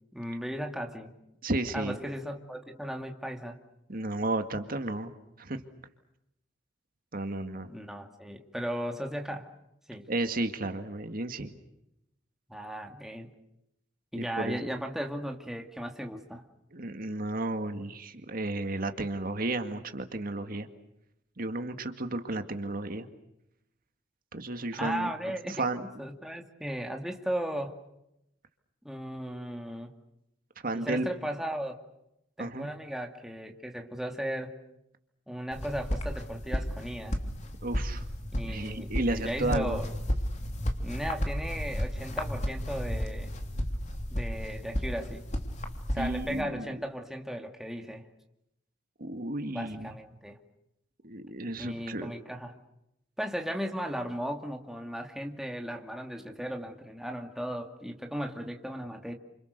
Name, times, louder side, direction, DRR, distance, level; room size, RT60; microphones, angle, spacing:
voice 1, 0.1-1.1 1.7-3.6 7.6-9.5 9.9-10.1 12.5-13.3 14.1-16.4 24.8-27.8 28.8-29.9 30.7-31.7 32.4-34.5 35.3-37.2 38.3-39.9 40.8-43.3 44.1-45.2 45.9-48.0 49.5-50.4 51.6-52.6 53.2-59.1, equal, ahead, 3 dB, 2.3 m, -36 dB
voice 2, 1.4-2.0 3.9-5.1 5.4-5.6 7.1-7.7 10.1-11.5 14.1-14.7 16.7-20.7 21.4-23.1 24.3-25.1 25.5-25.8 30.6-31.1 32.4-32.7 37.6-38.0 38.4-39.8 46.0-46.7 49.0-49.9 51.0-52.1, right 2 dB, 50° right, 7 dB, 2.0 m, -33 dB
sound 1, 35.5-46.4, equal, 40° left, 3.2 m, -33 dB
29.5 x 27.5 x 6.7 m, 0.83 s
head